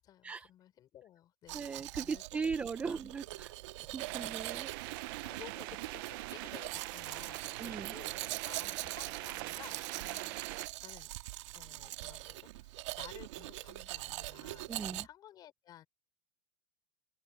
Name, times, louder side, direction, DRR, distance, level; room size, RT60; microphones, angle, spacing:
voice 1, 0.0-2.4 2.9-3.0 4.2-4.5 5.2-11.1 11.5-15.9, left 11 dB, 25° left, 5.8 m, -55 dB
voice 2, 1.5-3.5 3.8-5.2 7.6-7.9 14.7-15.1, right 5 dB, 10° right, 0.6 m, -39 dB
Domestic sounds home sounds, 1.5-15.1, right 18 dB, 65° right, 2.4 m, -43 dB
sound 1, 4.0-10.7, right 20 dB, 45° right, 0.8 m, -43 dB
open air
supercardioid pair, 175°, 16 cm